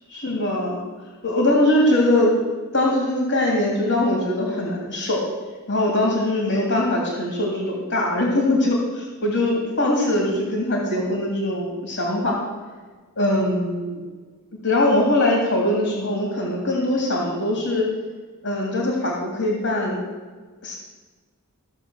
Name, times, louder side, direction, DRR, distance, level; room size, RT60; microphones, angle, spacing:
voice 1, 0.1-0.8 1.2-2.4 2.7-5.3 5.7-12.5 13.2-14.1 14.6-17.9 18.4-20.0 20.6-20.7, left 1 dB, 65° left, -2 dB, 2.8 m, -22 dB
15.5 x 7.0 x 6.4 m, 1.4 s
head